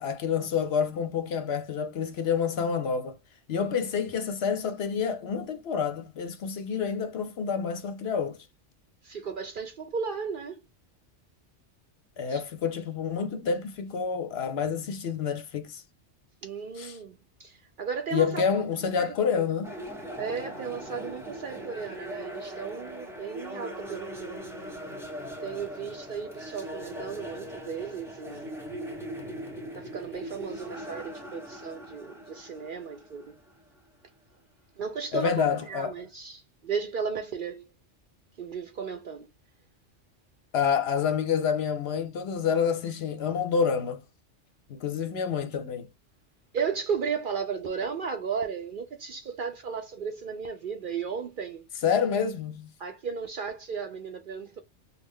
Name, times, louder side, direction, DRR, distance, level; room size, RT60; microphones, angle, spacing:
voice 1, 0.0-3.2 3.5-8.4 12.2-15.8 16.8-16.9 18.1-19.7 35.1-35.9 40.5-44.0 44.7-45.9 51.8-52.7, left 6 dB, 65° left, 0.8 m, -28 dB
voice 2, 9.0-10.6 12.3-12.4 16.4-18.5 19.0-19.5 20.2-24.4 25.4-28.5 29.7-33.4 34.8-37.7 38.4-39.3 46.5-51.7 52.8-54.6, right 6 dB, 55° right, 0.6 m, -35 dB
sound 1, 19.6-33.8, equal, 5° right, 0.7 m, -40 dB
3.1 x 2.3 x 3.6 m
omnidirectional pair, 1.3 m